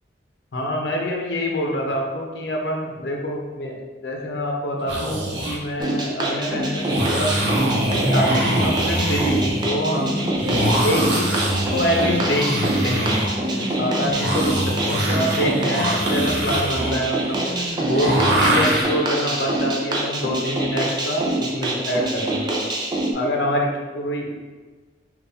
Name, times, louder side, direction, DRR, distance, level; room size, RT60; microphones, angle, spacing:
voice 1, 0.5-3.7 4.0-7.4 7.9-10.2 10.8-11.4 11.7-13.2 13.4-14.6 14.8-22.6 23.1-24.3, equal, 70° left, 0 dB, 0.6 m, -25 dB
sound 1, 4.8-5.6 6.8-18.8, right 1 dB, 70° right, 0.8 m, -24 dB
sound 2, 5.8-23.1, right 1 dB, 25° right, 0.4 m, -26 dB
sound 3, 6.5-16.5, left 2 dB, 40° left, 0.9 m, -32 dB
4.2 x 2.4 x 3.5 m, 1.3 s
head